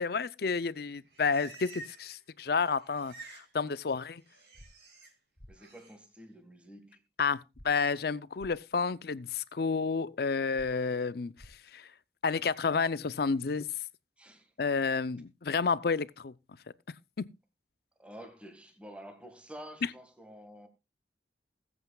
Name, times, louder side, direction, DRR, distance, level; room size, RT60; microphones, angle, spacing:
voice 1, 0.0-4.2 7.2-11.3 11.7-11.9 12.2-13.7 14.6-16.3, left 5 dB, 60° left, 0.5 m, -30 dB
Livestock farm animals working animals, 0.8-2.2 2.4-3.5 3.8-5.1 5.5-5.9, right 2 dB, 65° right, 5.1 m, -51 dB
sound 1, 4.5-4.7 5.4-5.5 7.5-7.7 8.4-8.5 10.5-10.7 11.4-11.5, equal, 20° left, 1.4 m, -51 dB
voice 2, 5.5-7.0 14.2-14.5 18.0-20.7, equal, 5° right, 1.7 m, -49 dB
20.5 x 8.0 x 2.3 m
head